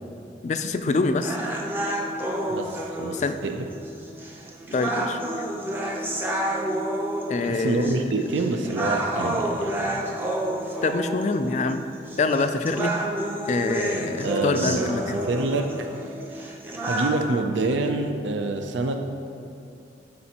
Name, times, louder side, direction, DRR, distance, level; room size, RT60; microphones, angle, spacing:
voice 1, 0.4-1.4 3.1-3.4 4.7-5.2 7.3-8.1 10.8-11.8 12.2-13.0 13.5-15.2, left 3 dB, 40° left, 9 dB, 0.3 m, -25 dB
sound 1, 1.2-17.2, right 1 dB, 10° right, 0.6 m, -30 dB
voice 2, 3.0-3.7 7.4-10.0 14.2-16.5 16.8-19.1, right 2 dB, 90° right, 5 dB, 0.5 m, -27 dB
12.0 x 5.3 x 2.9 m, 2.6 s
head